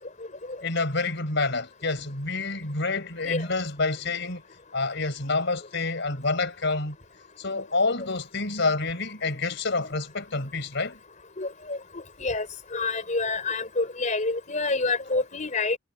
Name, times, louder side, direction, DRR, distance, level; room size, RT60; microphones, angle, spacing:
voice 1, 0.6-4.5 4.7-7.0 7.4-11.0, left 3 dB, 60° left, 4.7 m, -28 dB
voice 2, 11.4-12.5 12.7-15.8, left 3 dB, 35° left, 3.7 m, -28 dB
head